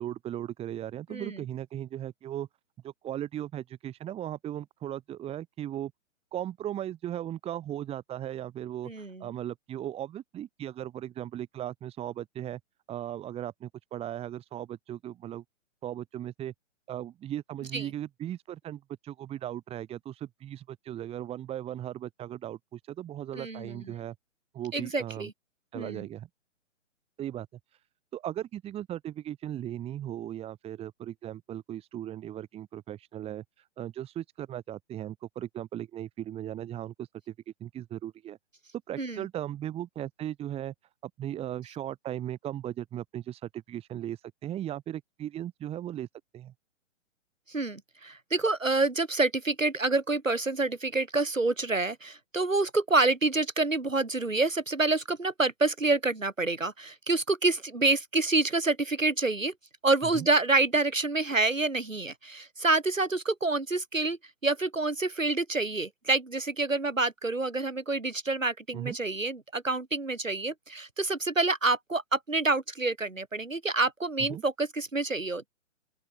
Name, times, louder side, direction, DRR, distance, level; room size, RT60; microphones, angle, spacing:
voice 1, 0.0-2.5 2.8-5.9 6.3-12.6 12.9-15.4 15.8-16.5 16.9-24.1 24.5-25.3 25.7-26.3 27.2-27.5 28.1-33.4 33.8-37.1 37.5-38.4 38.9-40.7 41.2-46.1 46.3-46.5 60.1-60.3 68.7-69.0 74.3-74.4, right 11 dB, 15° right, 2.8 m, -37 dB
voice 2, 8.8-9.3 17.7-17.8 23.3-23.8 24.7-25.3 25.7-26.1 39.0-39.2 47.5-59.5 59.8-75.5, right 3 dB, 90° right, 6.3 m, -27 dB
open air
figure-of-eight pair, 130°, 38 cm